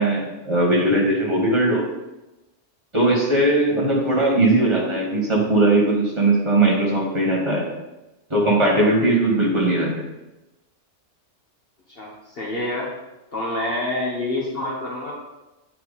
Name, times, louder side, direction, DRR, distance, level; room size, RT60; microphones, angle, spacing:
voice 1, 0.0-1.9 2.9-7.7 8.3-9.9, right 2 dB, 25° right, -3 dB, 1.9 m, -19 dB
voice 2, 11.9-12.9 13.3-15.1, left 1 dB, 50° left, -4 dB, 1.4 m, -27 dB
9.2 x 4.4 x 4.2 m, 1.0 s
omnidirectional pair, 1.3 m